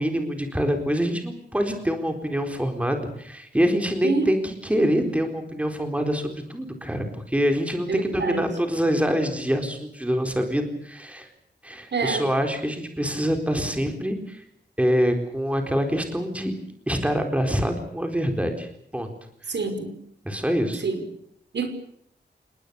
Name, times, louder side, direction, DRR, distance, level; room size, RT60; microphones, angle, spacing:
voice 1, 0.0-11.3 11.6-14.4 14.8-16.5 16.9-19.1 20.2-20.8, equal, 5° right, 5 dB, 4.2 m, -25 dB
voice 2, 7.9-8.5 11.9-12.2 19.5-19.9 20.8-21.0 21.5-21.7, right 4 dB, 70° right, 8 dB, 5.5 m, -26 dB
30.0 x 19.5 x 7.0 m, 0.70 s
wide cardioid pair, 145°, 18 cm